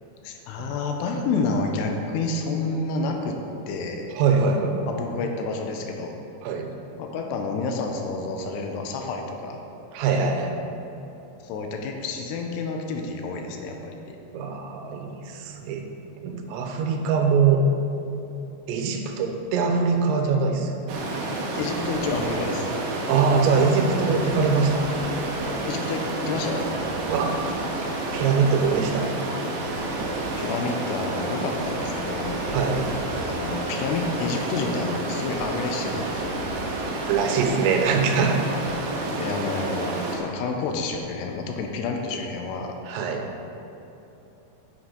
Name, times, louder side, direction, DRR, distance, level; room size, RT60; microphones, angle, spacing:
voice 1, 0.2-3.4 3.7-4.1 4.9-6.1 7.0-9.6 11.4-14.2 21.6-22.7 25.7-26.7 30.4-32.4 33.3-36.4 39.0-42.8, left 3 dB, 80° left, 3 dB, 2.7 m, -29 dB
voice 2, 4.2-4.9 6.4-6.7 9.9-10.5 14.3-15.8 16.2-17.6 18.7-20.7 23.1-24.9 27.1-27.4 28.1-29.1 29.5-29.6 32.5-33.2 37.1-38.4 42.9-43.4, right 5 dB, 90° right, 4 dB, 3.0 m, -23 dB
Stream, 20.9-40.2, right 2 dB, 70° right, 2.0 m, -29 dB
8.8 x 7.4 x 3.9 m, 3.0 s
omnidirectional pair, 5.0 m